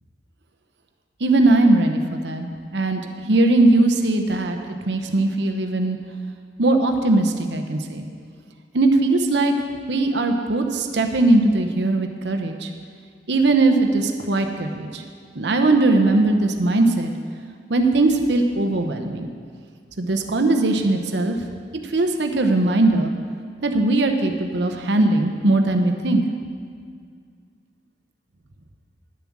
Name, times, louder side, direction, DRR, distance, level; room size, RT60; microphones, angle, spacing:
voice 1, 1.2-2.5 2.7-3.0 3.3-4.6 4.8-6.0 6.6-8.1 8.7-9.5 9.9-12.7 13.3-15.0 15.4-17.1 17.7-19.3 20.0-21.4 21.9-23.1 23.6-26.2, right 2 dB, 70° right, 5 dB, 0.8 m, -19 dB
10.5 x 7.2 x 7.3 m, 2.1 s
head